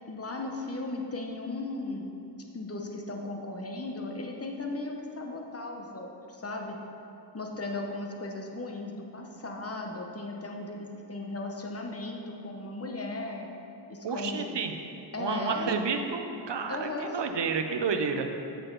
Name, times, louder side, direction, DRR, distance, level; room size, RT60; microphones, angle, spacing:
voice 1, 0.1-2.1 2.5-6.8 7.3-13.5 13.9-14.6 15.1-15.8 16.7-17.2, left 2 dB, 35° left, 1 dB, 0.9 m, -36 dB
voice 2, 14.0-14.7 15.2-18.3, right 5 dB, 75° right, 5 dB, 0.7 m, -30 dB
8.1 x 6.6 x 3.9 m, 2.7 s
wide cardioid pair, 60°, 43 cm